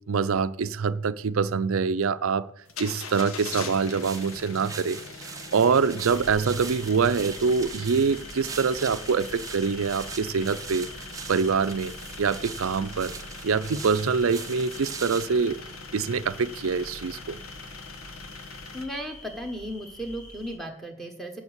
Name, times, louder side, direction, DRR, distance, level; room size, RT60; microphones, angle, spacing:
voice 1, 0.1-2.5 2.8-5.0 5.5-10.9 11.3-11.9 12.2-13.1 13.4-15.6 15.9-17.4, right 5 dB, 80° right, 14 dB, 0.5 m, -25 dB
sound 1, 2.7-18.9, left 4 dB, 85° left, 1.2 m, -42 dB
sound 2, 3.1-15.3, right 6 dB, 15° right, 0.6 m, -42 dB
sound 3, 6.1-20.6, left 1 dB, 70° left, 2.8 m, -46 dB
voice 2, 18.7-21.4, equal, ahead, 2 dB, 1.2 m, -35 dB
7.8 x 7.2 x 8.1 m, 0.77 s
head